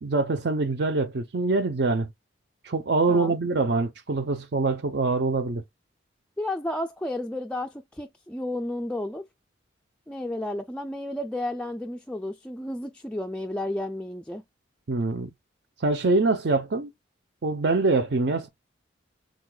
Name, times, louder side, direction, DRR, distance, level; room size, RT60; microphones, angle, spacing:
voice 1, 0.0-2.1 2.6-5.6 14.9-15.3 15.8-16.9 17.4-18.5, right 3 dB, 55° right, 0.5 m, -24 dB
voice 2, 6.4-9.2 10.1-14.4, left 1 dB, 5° left, 0.3 m, -32 dB
6.2 x 3.9 x 2.2 m
head